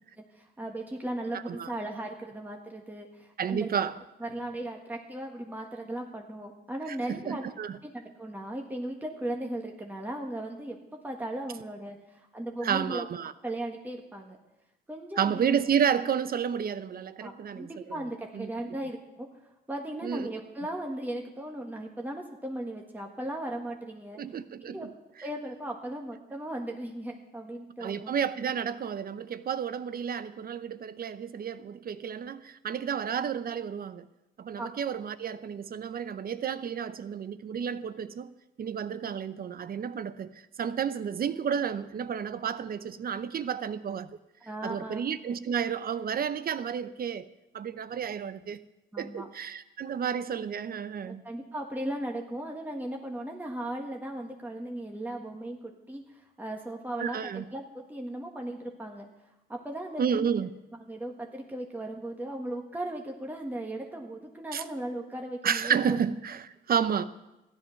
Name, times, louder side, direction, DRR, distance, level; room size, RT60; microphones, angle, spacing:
voice 1, 0.3-3.7 4.2-7.4 7.8-13.0 13.4-14.4 14.9-15.5 17.2-19.3 19.7-24.2 24.7-24.9 25.2-28.1 34.6-34.7 44.4-45.0 48.9-49.3 51.0-59.0 59.5-60.3 60.8-65.8, right 1 dB, 10° right, 1.6 m, -37 dB
voice 2, 3.4-4.0 6.9-7.8 12.6-13.3 15.2-18.0 18.3-18.5 20.0-20.3 24.2-24.9 27.8-34.1 34.4-38.3 38.6-44.2 44.6-47.3 47.5-48.6 49.0-51.2 57.0-57.4 60.0-60.5 64.5-64.6 65.4-67.0, right 7 dB, 50° right, 0.8 m, -31 dB
13.5 x 10.5 x 5.9 m
cardioid pair, 90°, 20 cm